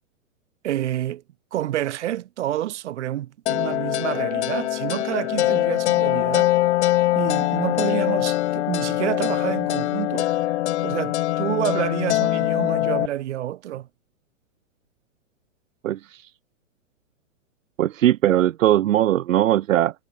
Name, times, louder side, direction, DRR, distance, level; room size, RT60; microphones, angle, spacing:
voice 1, 0.6-1.2 1.5-6.5 7.1-10.3 10.8-13.9, right 13 dB, 60° right, 1.5 m, -28 dB
sound 1, 3.5-13.1, left 15 dB, 65° left, 0.5 m, -23 dB
voice 2, 17.8-19.9, right 12 dB, 80° right, 0.7 m, -19 dB
hypercardioid pair, 145°, 38 cm